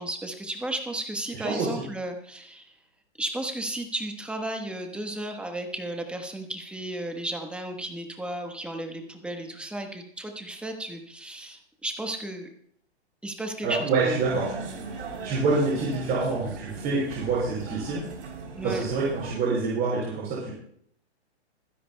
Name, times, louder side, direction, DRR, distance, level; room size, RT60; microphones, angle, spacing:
voice 1, 0.0-2.7 3.2-12.5 13.2-14.2 18.6-18.8, right 1 dB, 5° right, 4 dB, 1.2 m, -34 dB
voice 2, 1.4-1.8 13.6-14.5 15.2-18.0 18.6-20.5, right 3 dB, 30° right, -6 dB, 5.1 m, -26 dB
sound 1, 14.1-19.3, right 3 dB, 90° right, 3.4 m, -38 dB
25.5 x 10.0 x 2.2 m, 0.68 s
hypercardioid pair, 140°, 34 cm